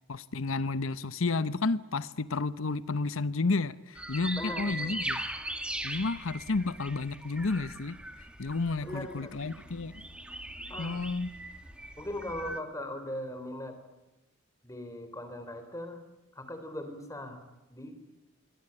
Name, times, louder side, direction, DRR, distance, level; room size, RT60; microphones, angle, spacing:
voice 1, 0.1-5.2 5.8-8.0 8.4-10.0 10.8-11.3, left 3 dB, 75° left, 0.9 m, -31 dB
sound 1, 3.9-12.6, right 1 dB, 5° right, 1.9 m, -40 dB
voice 2, 4.3-4.9 8.8-9.3 10.7-11.0 12.0-13.8 14.6-16.0 16.4-17.4 17.7-18.0, left 1 dB, 15° left, 3.7 m, -39 dB
27.0 x 23.0 x 8.9 m
head